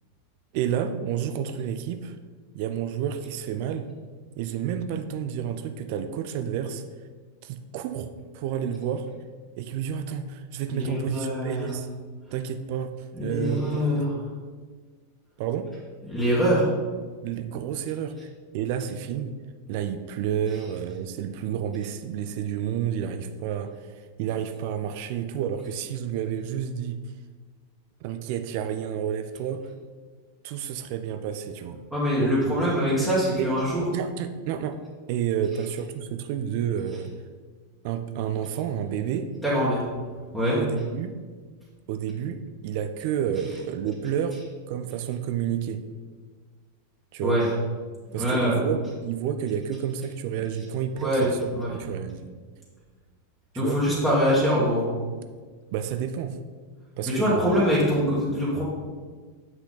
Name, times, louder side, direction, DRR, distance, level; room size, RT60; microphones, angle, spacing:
voice 1, 0.5-2.2 2.5-3.9 4.4-6.8 7.4-9.1 9.6-11.9 12.3-12.9 13.2-13.8 14.1-14.3 15.4-15.7 17.2-18.3 18.5-19.3 19.7-27.0 28.0-29.7 30.4-31.8 32.2-32.3 32.8-33.1 33.4-33.5 33.9-34.8 35.1-37.1 37.8-39.3 40.5-41.2 41.9-45.8 47.1-47.4 48.1-52.3 53.6-53.8 54.1-54.2 55.7-56.4 57.0-57.6, right 9 dB, 45° right, 9 dB, 0.5 m, -30 dB
voice 2, 10.7-11.7 13.1-14.2 16.0-16.7 31.9-33.8 39.4-39.8 40.3-40.6 47.2-47.5 48.1-48.6 51.0-51.8 53.6-54.9 57.1-58.6, equal, 5° right, -10 dB, 2.1 m, -24 dB
7.9 x 5.8 x 4.0 m, 1.5 s
figure-of-eight pair, 90°, 0 cm